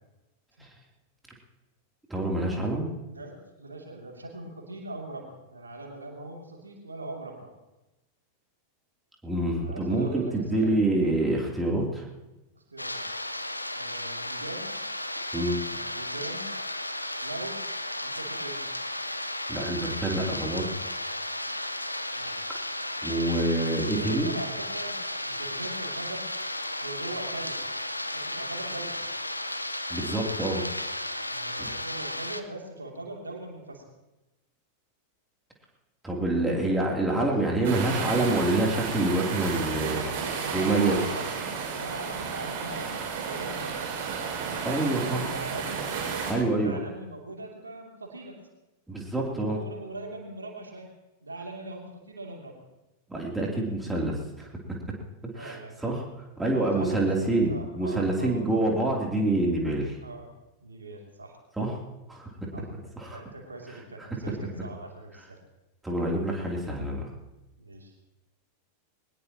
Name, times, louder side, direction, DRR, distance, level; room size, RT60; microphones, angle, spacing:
voice 1, 2.1-2.9 9.2-12.1 15.3-15.6 19.5-20.7 22.1-22.4 23.0-24.3 29.9-30.9 36.0-40.0 40.5-41.0 44.6-45.3 46.3-46.8 48.9-49.6 53.1-54.5 55.3-56.0 56.4-60.0 61.6-61.8 62.1-62.3 63.0-63.2 65.8-67.1, right 2 dB, 5° right, -2 dB, 3.2 m, -27 dB
voice 2, 3.1-7.5 9.6-10.7 12.5-13.0 13.7-14.7 15.6-16.5 17.2-18.6 22.1-22.4 23.8-25.0 25.2-26.2 26.8-27.6 28.1-29.0 31.3-33.8 39.4-43.9 44.8-45.7 46.3-48.4 49.4-50.9 51.2-52.6 55.3-55.8 56.5-58.4 60.0-60.3 60.6-61.4 62.5-62.6 63.1-65.4 67.6-67.9, right 2 dB, 75° right, 0 dB, 2.8 m, -41 dB
sound 1, 12.8-32.4, left 1 dB, 85° left, 0.7 m, -34 dB
sound 2, 37.6-46.3, right 6 dB, 50° right, 6.0 m, -32 dB
21.5 x 19.5 x 3.0 m, 1.0 s
figure-of-eight pair, 90°, 0 cm